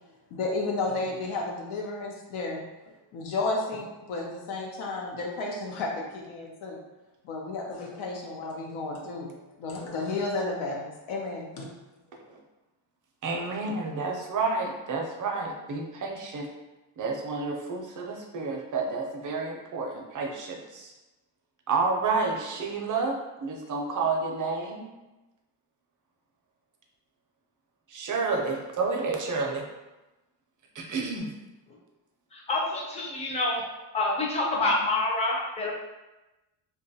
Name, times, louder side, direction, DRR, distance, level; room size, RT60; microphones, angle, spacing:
voice 1, 0.3-2.6 3.1-6.8 7.2-9.3 9.6-11.7, left 3 dB, 85° left, 0 dB, 0.6 m, -32 dB
voice 2, 13.2-16.5 17.0-20.9 21.7-24.9 27.9-29.6 30.7-31.3, right 4 dB, 40° right, 1 dB, 0.5 m, -30 dB
voice 3, 32.3-33.6 33.9-35.7, left 2 dB, 15° left, -3 dB, 0.4 m, -27 dB
2.8 x 2.3 x 2.6 m, 1.1 s
cardioid pair, 130°, 47 cm